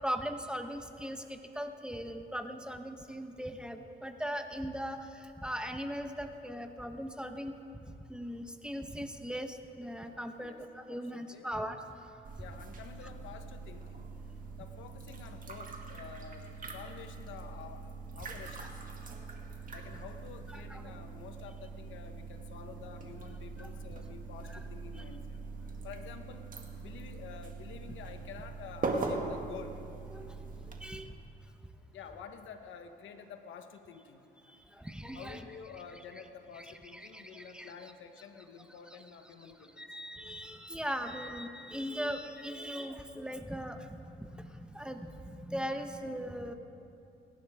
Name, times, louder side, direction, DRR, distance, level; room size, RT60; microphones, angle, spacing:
voice 1, 0.0-7.6 8.1-11.8 20.7-20.8 23.6-23.7 25.0-25.1 30.1-30.5 30.8-31.1 34.5-35.4 36.9-37.7 39.8-46.5, equal, 5° right, 6 dB, 1.1 m, -39 dB
voice 2, 10.4-11.5 12.4-14.1 14.6-17.8 18.1-19.3 19.7-26.5 26.8-29.8 31.5-31.6 31.9-34.8 35.1-39.9 41.2-41.3, left 7 dB, 75° left, 7 dB, 1.2 m, -50 dB
sound 1, 12.2-30.8, right 3 dB, 45° right, 2.1 m, -42 dB
28.0 x 12.0 x 3.6 m, 2.7 s
cardioid pair, 90°, 20 cm